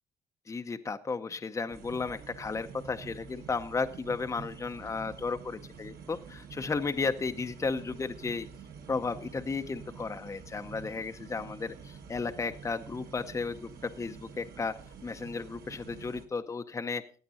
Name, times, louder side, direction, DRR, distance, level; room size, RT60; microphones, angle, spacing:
voice 1, 0.5-8.5 8.9-14.7 15.0-17.0, left 4 dB, 20° left, 7 dB, 0.7 m, -34 dB
sound 1, 1.7-16.2, right 6 dB, 60° right, 1.9 m, -48 dB
16.0 x 9.1 x 4.2 m, 0.40 s
cardioid pair, 110°, 17 cm